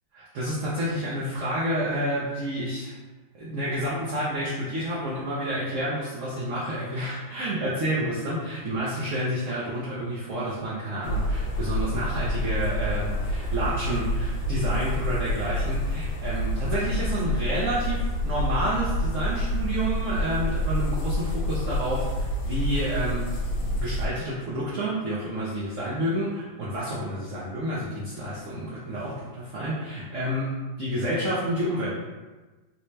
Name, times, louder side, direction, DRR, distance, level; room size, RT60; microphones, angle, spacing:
voice 1, 0.1-2.9 3.3-23.3 23.6-32.0, right 1 dB, 65° right, -8 dB, 0.7 m, -29 dB
sound 1, 11.0-24.1, left 1 dB, 70° left, 1.3 m, -28 dB
4.1 x 2.2 x 3.1 m, 1.2 s
omnidirectional pair, 2.2 m